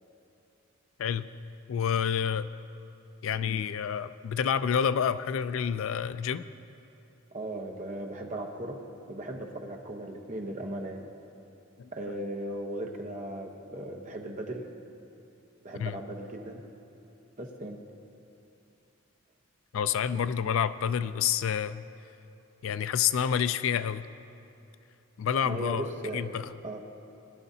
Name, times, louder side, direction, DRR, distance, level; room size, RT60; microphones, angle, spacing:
voice 1, 1.7-2.5 3.2-6.4 11.8-12.2 15.8-16.0 19.7-21.8 22.6-24.1 25.2-25.9 26.1-26.5, left 8 dB, 70° left, 14 dB, 0.3 m, -28 dB
voice 2, 7.3-8.8 9.1-11.0 11.9-14.7 15.6-16.6 17.4-17.8 25.4-26.2 26.6-26.8, right 1 dB, 35° right, 2 dB, 1.0 m, -37 dB
19.5 x 11.0 x 2.8 m, 2.9 s
head